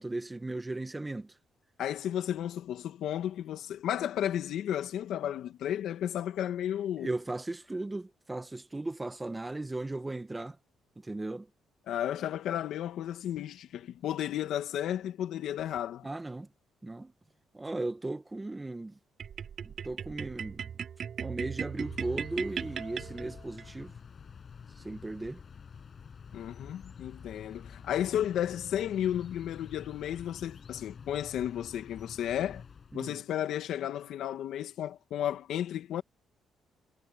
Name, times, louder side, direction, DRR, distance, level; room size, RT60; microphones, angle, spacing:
voice 1, 0.0-1.3 7.0-10.6 11.0-11.5 16.0-16.5 16.8-17.1 17.5-18.9 19.6-20.7 21.2-23.9 24.8-25.4 32.9-33.1, right 2 dB, 15° right, 1.5 m, -36 dB
voice 2, 1.8-7.1 11.9-16.1 26.3-32.6 32.9-36.0, left 11 dB, 75° left, 2.2 m, -33 dB
sound 1, 19.2-23.7, right 8 dB, 55° right, 0.5 m, -38 dB
sound 2, 21.7-33.1, left 6 dB, 45° left, 7.0 m, -49 dB
cardioid pair, 90°, 0 cm